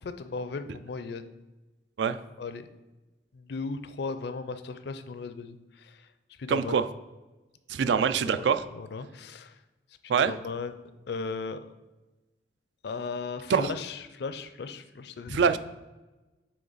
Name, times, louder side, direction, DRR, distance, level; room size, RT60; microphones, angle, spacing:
voice 1, 0.0-1.2 2.4-2.7 3.3-6.1 6.4-6.8 8.2-8.5 8.7-9.6 10.0-10.7 11.1-11.6 12.8-15.6, left 4 dB, 65° left, 11 dB, 0.4 m, -36 dB
voice 2, 6.5-6.8 7.7-8.6 10.1-10.3 13.5-13.7 15.3-15.6, right 6 dB, 75° right, 12 dB, 0.4 m, -24 dB
7.6 x 3.2 x 4.0 m, 1.1 s
head